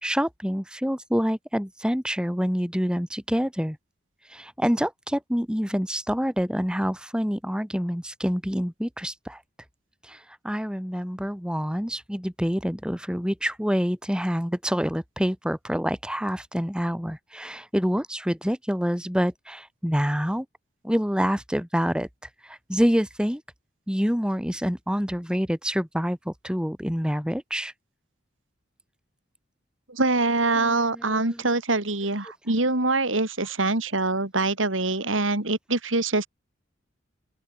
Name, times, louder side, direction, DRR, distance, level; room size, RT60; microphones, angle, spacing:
voice 1, 0.0-3.8 4.3-9.4 10.1-10.2 10.4-20.5 20.8-22.1 22.5-23.4 23.9-27.7 30.6-31.4, equal, 5° right, 4.0 m, -27 dB
voice 2, 29.9-36.3, right 2 dB, 90° right, 3.8 m, -24 dB
open air
head